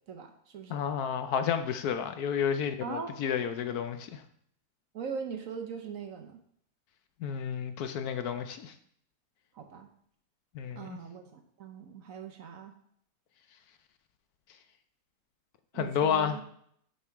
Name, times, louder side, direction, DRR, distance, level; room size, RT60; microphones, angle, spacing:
voice 1, 0.1-0.8 2.8-3.1 4.9-6.4 9.6-9.9 10.7-12.7 15.7-16.4, right 6 dB, 60° right, 5 dB, 1.1 m, -40 dB
voice 2, 0.7-4.2 7.2-8.7 10.5-11.0 15.7-16.4, left 8 dB, 70° left, 8 dB, 1.1 m, -31 dB
6.7 x 5.4 x 4.6 m, 0.66 s
omnidirectional pair, 1.7 m